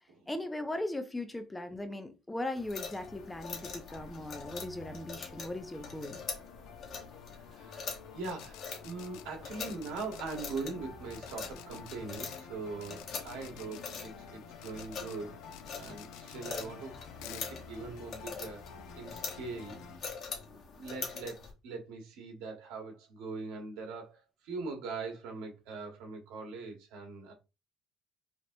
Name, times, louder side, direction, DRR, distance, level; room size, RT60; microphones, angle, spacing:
voice 1, 0.3-6.2, left 1 dB, 5° left, 0.4 m, -38 dB
sound 1, 2.6-21.5, left 5 dB, 35° left, 1.1 m, -44 dB
sound 2, 2.9-20.0, left 6 dB, 70° left, 1.0 m, -51 dB
voice 2, 7.3-15.3 15.8-17.0 17.2-18.7 18.9-20.1 20.5-21.4 21.6-27.3, right 4 dB, 85° right, 1.5 m, -42 dB
sound 3, 8.2-9.2 9.7-10.5 11.1-12.4 12.8-14.0 14.6-15.2 15.5-16.7 17.2-17.5, left 12 dB, 85° left, 0.5 m, -51 dB
5.1 x 2.8 x 2.7 m
cardioid pair, 175°, 0 cm